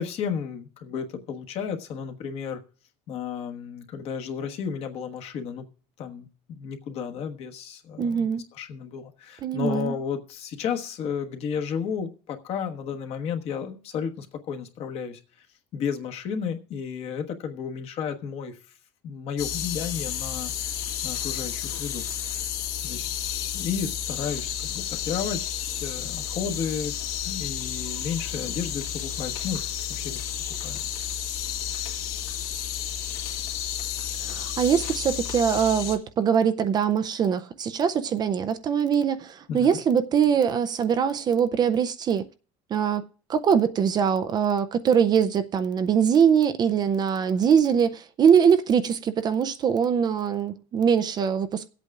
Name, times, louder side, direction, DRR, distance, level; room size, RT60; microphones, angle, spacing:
voice 1, 0.0-2.6 3.1-5.7 6.0-15.5 15.7-18.6 19.0-20.7 21.0-22.5 22.8-27.0 27.2-29.6 29.9-30.2 30.6-30.8 39.5-39.8, left 7 dB, 45° left, 1.3 m, -33 dB
voice 2, 8.0-8.4 9.4-9.9 34.2-42.3 42.7-51.7, right 7 dB, 30° right, 0.5 m, -22 dB
sound 1, 19.4-36.0, left 10 dB, 70° left, 2.2 m, -31 dB
23.5 x 8.3 x 2.4 m
cardioid pair, 150°, 14 cm